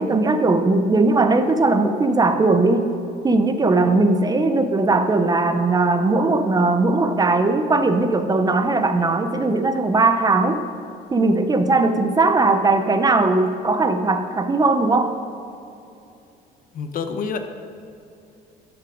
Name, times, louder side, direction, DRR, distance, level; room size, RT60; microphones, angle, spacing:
voice 1, 0.0-2.9 3.2-10.6 11.1-15.1, right 3 dB, 25° right, 8 dB, 0.6 m, -19 dB
voice 2, 16.7-17.4, left 5 dB, 55° left, 8 dB, 0.8 m, -27 dB
12.0 x 6.0 x 5.0 m, 2.7 s
cardioid pair, 110°, 17 cm